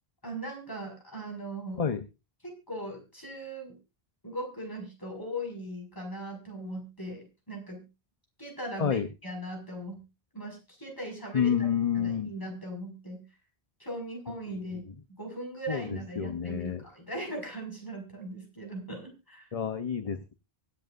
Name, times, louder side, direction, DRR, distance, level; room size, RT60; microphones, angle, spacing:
voice 1, 0.2-1.8 2.4-3.8 4.2-7.9 8.4-10.0 10.3-11.7 11.9-13.2 13.8-19.5, right 1 dB, 20° left, 0 dB, 5.2 m, -39 dB
voice 2, 11.3-12.3 15.7-16.8 19.5-20.3, left 7 dB, 40° left, 8 dB, 0.8 m, -29 dB
24.0 x 8.0 x 2.5 m, 0.28 s
omnidirectional pair, 1.1 m